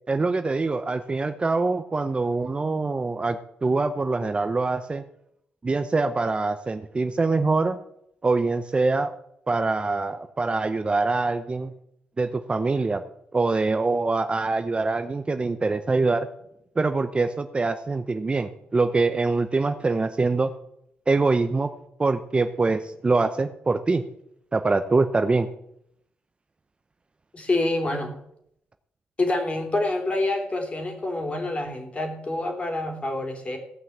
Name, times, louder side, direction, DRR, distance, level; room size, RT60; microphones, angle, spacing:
voice 1, 0.1-5.0 5.6-7.8 8.2-9.1 9.5-11.7 12.2-13.0 13.3-16.3 16.8-20.5 21.1-21.7 22.0-24.0 24.5-25.5, right 3 dB, 25° right, 9 dB, 0.7 m, -24 dB
voice 2, 27.3-28.1 29.2-33.6, left 2 dB, 30° left, 3 dB, 3.4 m, -27 dB
16.0 x 5.9 x 8.0 m, 0.75 s
cardioid pair, 90°, 4 cm